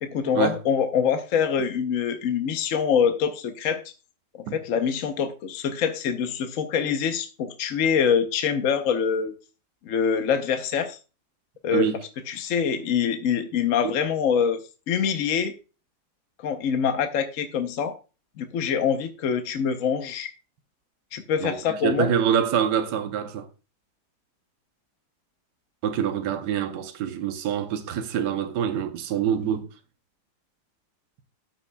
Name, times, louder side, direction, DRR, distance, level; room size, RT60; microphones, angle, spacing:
voice 1, 0.0-3.8 4.4-9.3 9.8-11.0 11.6-11.9 12.3-14.6 14.9-15.5 16.4-18.0 18.4-20.3 21.1-22.1, left 7 dB, 60° left, 1.1 m, -25 dB
voice 2, 21.4-23.5 25.8-29.7, right 8 dB, 80° right, 1.4 m, -25 dB
13.0 x 6.1 x 2.2 m
omnidirectional pair, 1.8 m